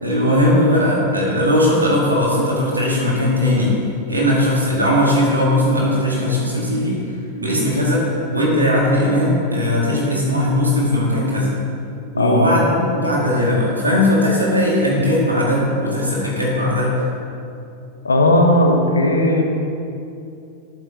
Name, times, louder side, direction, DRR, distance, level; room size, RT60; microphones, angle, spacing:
voice 1, 0.0-3.8 4.1-8.0 8.3-11.5 12.1-17.0, left 1 dB, 80° right, -4 dB, 2.0 m, -18 dB
voice 2, 12.2-12.5 18.0-19.4, left 1 dB, 75° left, 3 dB, 0.9 m, -15 dB
10.5 x 7.9 x 2.8 m, 2.6 s
figure-of-eight pair, 90°, 0 cm